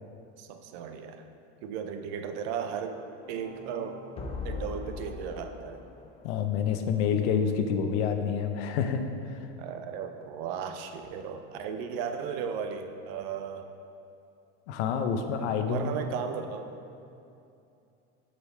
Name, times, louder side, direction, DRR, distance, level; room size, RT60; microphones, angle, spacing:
voice 1, 0.4-1.2 1.6-4.0 4.4-5.8 9.6-13.7 15.6-16.7, right 7 dB, 60° right, 7 dB, 0.6 m, -36 dB
sound 1, 3.2-6.5, left 4 dB, 20° left, 0.5 m, -40 dB
voice 2, 6.2-9.5 14.7-15.9, left 7 dB, 75° left, 7 dB, 0.7 m, -28 dB
7.8 x 5.3 x 3.2 m, 2.7 s
supercardioid pair, 140°, 35 cm